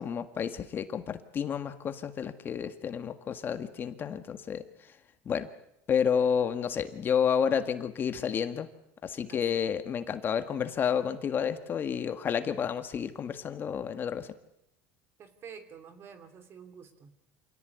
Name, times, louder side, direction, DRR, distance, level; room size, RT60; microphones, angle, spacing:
voice 1, 0.0-4.6 5.3-5.5 5.9-8.7 9.0-14.3, left 7 dB, 30° left, 10 dB, 1.8 m, -30 dB
voice 2, 15.2-17.1, right 7 dB, 40° right, 10 dB, 3.1 m, -49 dB
27.0 x 18.0 x 9.5 m, 0.80 s
supercardioid pair, 125°, 7 cm